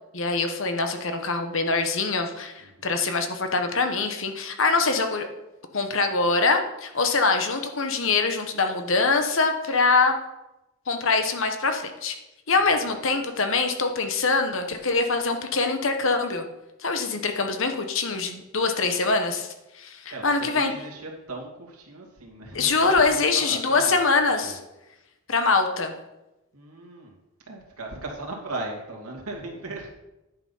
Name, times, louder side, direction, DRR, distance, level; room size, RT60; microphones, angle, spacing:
voice 1, 0.1-5.3 5.7-10.2 10.9-12.1 12.5-16.4 16.8-20.7 22.5-24.6 25.3-25.9, left 4 dB, 60° left, 6 dB, 1.1 m, -24 dB
voice 2, 2.6-2.9 20.1-24.0 24.4-24.6 26.5-27.2 27.5-29.9, right 2 dB, 85° right, 0 dB, 2.4 m, -37 dB
10.5 x 6.0 x 5.6 m, 0.96 s
head